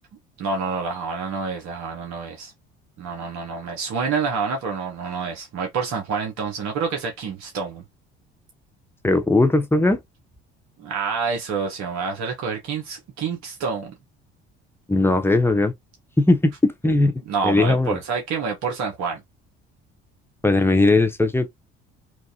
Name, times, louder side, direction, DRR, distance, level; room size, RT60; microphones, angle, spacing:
voice 1, 0.4-2.5 3.0-7.8 10.8-13.9 17.3-19.2, right 5 dB, 55° right, 1.2 m, -28 dB
voice 2, 9.0-10.0 14.9-15.7 16.2-17.1 17.4-18.0 20.4-21.5, left 2 dB, 5° left, 0.7 m, -18 dB
3.1 x 2.4 x 2.8 m
hypercardioid pair, 60°, 32 cm